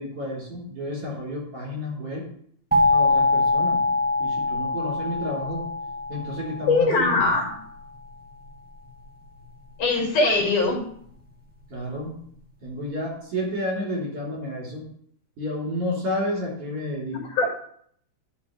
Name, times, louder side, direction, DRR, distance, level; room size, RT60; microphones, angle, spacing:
voice 1, 0.0-2.2 2.9-3.9 4.2-5.6 6.1-7.3 11.7-12.2 12.6-14.9 15.4-17.2, left 1 dB, 50° right, -5 dB, 4.7 m, -31 dB
sound 1, 2.7-7.4, left 2 dB, 10° right, 0.4 m, -24 dB
voice 2, 6.7-7.5 9.8-10.8 17.3-17.5, left 3 dB, 80° left, -2 dB, 4.1 m, -21 dB
11.5 x 6.8 x 3.4 m, 0.63 s
omnidirectional pair, 3.5 m